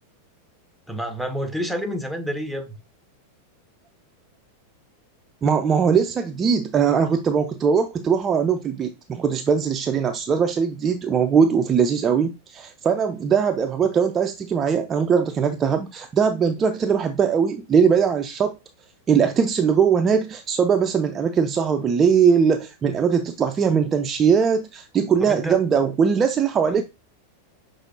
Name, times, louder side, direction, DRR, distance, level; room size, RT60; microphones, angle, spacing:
voice 1, 0.9-2.8 25.2-25.6 26.7-26.8, equal, ahead, 0.7 m, -29 dB
voice 2, 5.4-18.6 19.1-26.8, right 6 dB, 25° right, 0.3 m, -20 dB
5.8 x 3.1 x 2.7 m
figure-of-eight pair, 90°, 0 cm